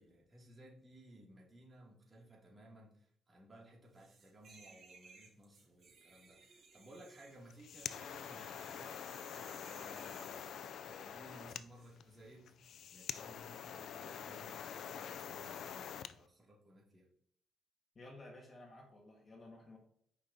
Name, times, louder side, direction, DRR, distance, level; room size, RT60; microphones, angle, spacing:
voice 1, 0.0-12.5 12.9-17.1, right 1 dB, 25° right, -3 dB, 2.4 m, -59 dB
sound 1, 4.0-10.8 11.7-11.9, right 4 dB, 55° right, 2.7 m, -61 dB
sound 2, 7.4-16.2, left 8 dB, 70° left, 0.3 m, -46 dB
voice 2, 17.9-19.8, left 2 dB, 35° left, 1 dB, 1.6 m, -54 dB
6.7 x 5.2 x 2.8 m, 0.65 s
cardioid pair, 90°, 0 cm